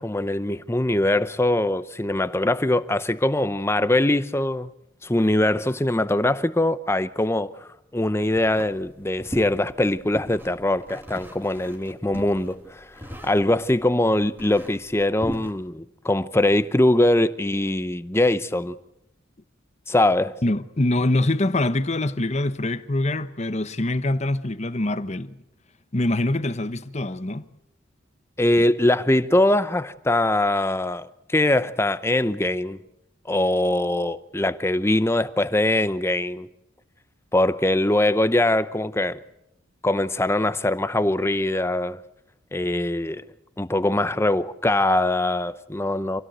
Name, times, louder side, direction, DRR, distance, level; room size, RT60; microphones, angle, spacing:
voice 1, 0.0-4.7 5.0-18.8 19.9-20.4 28.4-32.8 33.3-36.5 37.3-39.2 39.8-42.0 42.5-43.2 43.6-46.2, left 1 dB, 15° left, 0.8 m, -22 dB
sound 1, 8.3-15.5, equal, 10° right, 2.8 m, -39 dB
voice 2, 20.4-25.4 25.9-27.5, left 1 dB, 35° left, 1.0 m, -24 dB
27.0 x 17.0 x 8.0 m
head